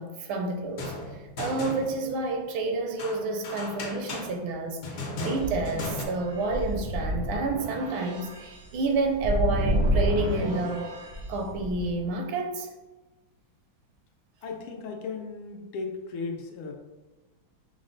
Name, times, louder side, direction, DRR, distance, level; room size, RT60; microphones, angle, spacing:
voice 1, 0.0-10.9 11.3-12.7, right 3 dB, 75° right, 1.3 m, -30 dB
sound 1, 0.7-2.3 3.0-6.1, left 1 dB, 70° left, 1.4 m, -36 dB
sound 2, 5.4-12.1, equal, 60° right, 0.8 m, -30 dB
voice 2, 14.4-16.7, left 4 dB, 85° left, 1.6 m, -36 dB
5.6 x 2.1 x 3.9 m
omnidirectional pair, 2.3 m